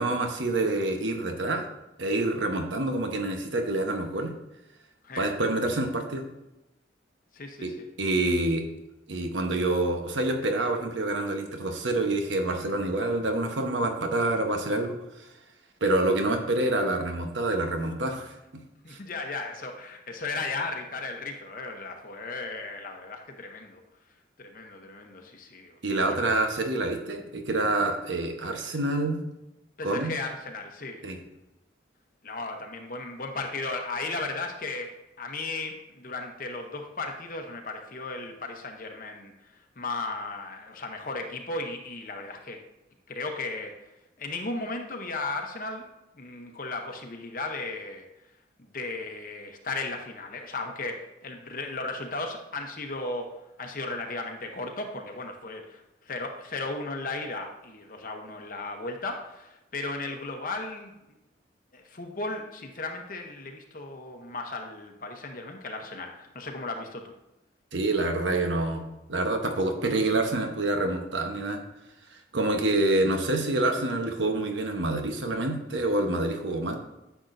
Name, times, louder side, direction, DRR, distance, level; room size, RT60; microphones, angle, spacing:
voice 1, 0.0-1.6 2.0-4.3 5.2-6.3 7.6-8.6 9.1-15.0 15.8-18.6 18.9-19.0 25.8-29.2 29.8-30.1 31.0-31.2 67.7-68.8 69.1-71.6 72.3-76.8, right 2 dB, 80° right, 4 dB, 1.1 m, -27 dB
voice 2, 7.3-7.9 18.8-23.8 24.4-26.2 29.8-31.0 32.2-34.9 35.2-39.3 39.8-42.6 43.1-43.7 44.2-45.9 46.2-48.0 48.6-55.8 56.0-60.9 61.7-67.1, left 3 dB, 45° left, 3 dB, 0.8 m, -35 dB
10.0 x 7.0 x 2.6 m, 0.95 s
head